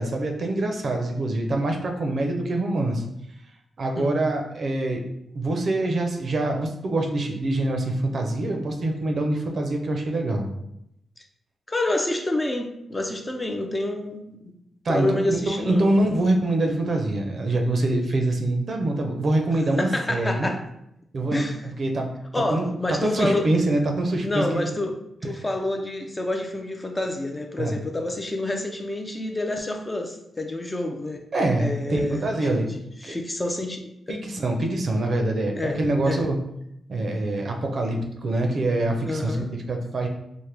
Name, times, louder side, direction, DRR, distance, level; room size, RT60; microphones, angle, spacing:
voice 1, 0.0-3.0 3.8-5.0 5.3-10.5 14.8-20.5 21.1-22.1 22.3-24.7 27.6-27.8 31.3-32.7 33.0-33.2 34.1-36.4 36.9-39.4 39.7-40.1, right 2 dB, 50° right, 3 dB, 0.5 m, -25 dB
voice 2, 11.7-14.5 14.9-15.9 19.8-20.6 21.3-21.6 22.3-23.5 24.2-24.9 25.2-31.2 31.6-34.2 35.5-35.8 36.1-36.2 39.1-39.5, left 1 dB, 20° left, 3 dB, 0.4 m, -28 dB
4.4 x 2.1 x 3.3 m, 0.80 s
wide cardioid pair, 120°, 0 cm